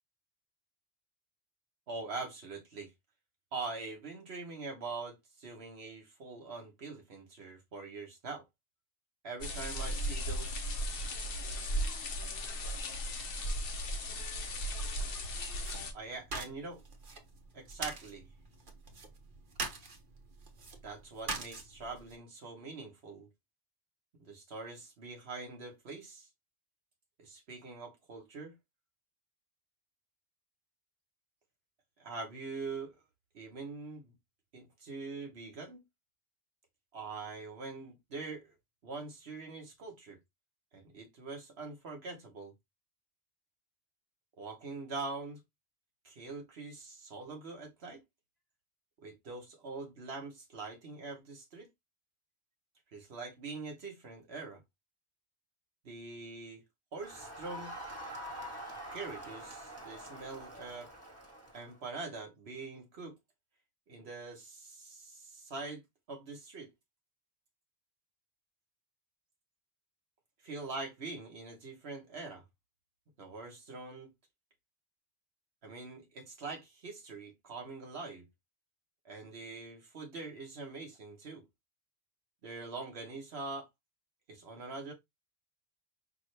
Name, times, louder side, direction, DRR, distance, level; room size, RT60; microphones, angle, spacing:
voice 1, 1.9-2.9 3.5-8.4 9.2-11.0 15.9-16.8 17.5-18.3 20.8-23.3 24.2-26.3 27.2-28.6 32.0-33.0 33.3-34.1 34.5-35.8 36.9-38.6 38.8-40.2 40.7-42.5 44.4-45.4 46.0-48.0 49.0-51.7 52.9-54.6 55.8-56.6 56.9-57.7 58.9-60.9 61.5-63.2 63.9-65.8 66.1-66.7 70.4-72.4 73.2-74.1 75.6-78.3 79.0-81.4 82.4-83.7 84.3-84.9, right 3 dB, 75° right, 1.3 m, -43 dB
sound 1, 9.4-15.9, equal, 65° left, 1.0 m, -36 dB
sound 2, 15.6-22.2, right 3 dB, 50° right, 1.1 m, -44 dB
Crowd, 57.0-61.8, equal, 15° right, 1.7 m, -45 dB
5.5 x 2.5 x 3.2 m
omnidirectional pair, 1.1 m